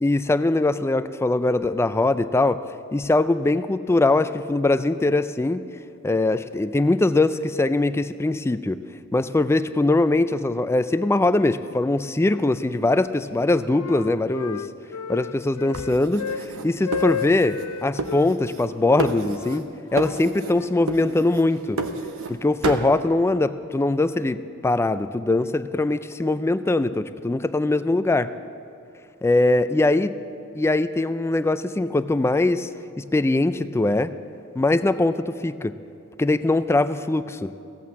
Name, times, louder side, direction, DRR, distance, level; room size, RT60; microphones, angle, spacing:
voice 1, 0.0-2.6 2.9-5.6 6.0-8.8 9.1-14.7 15.1-21.8 22.3-28.3 29.2-30.1 30.5-32.7 33.0-34.1 34.5-35.7 36.2-37.5, left 2 dB, 10° left, 12 dB, 0.3 m, -22 dB
Wind instrument woodwind instrument, 12.2-13.0 13.4-16.5 16.8-18.3 18.9-21.4, left 7 dB, 75° left, 0.5 m, -34 dB
sound 1, 15.7-17.7 18.0-18.7 19.0-19.7 20.0-20.6 20.9-22.4 22.6-22.9, right 3 dB, 65° right, 0.9 m, -31 dB
16.0 x 8.5 x 7.3 m, 2.8 s
head